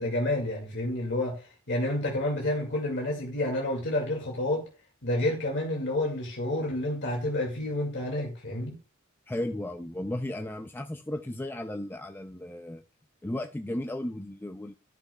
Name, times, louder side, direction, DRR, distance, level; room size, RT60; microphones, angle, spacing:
voice 1, 0.0-4.7 5.0-8.8, left 1 dB, 60° left, 2.3 m, -29 dB
voice 2, 9.3-12.8 13.2-14.7, left 1 dB, 10° left, 0.5 m, -35 dB
12.5 x 6.0 x 2.3 m
head